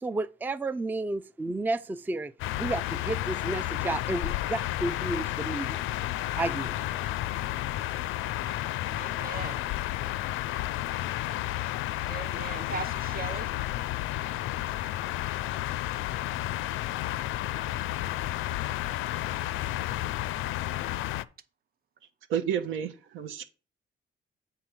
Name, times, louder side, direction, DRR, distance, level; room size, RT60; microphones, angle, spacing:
voice 1, 0.0-2.3 2.6-5.8 6.4-6.8, right 2 dB, 10° right, 0.4 m, -32 dB
sound 1, 2.4-21.2, left 14 dB, 85° left, 0.4 m, -32 dB
voice 2, 8.9-9.6 12.0-13.5, right 6 dB, 50° right, 0.8 m, -39 dB
voice 3, 22.3-23.4, right 9 dB, 90° right, 1.0 m, -30 dB
7.9 x 3.7 x 6.0 m
cardioid pair, 90°, 20 cm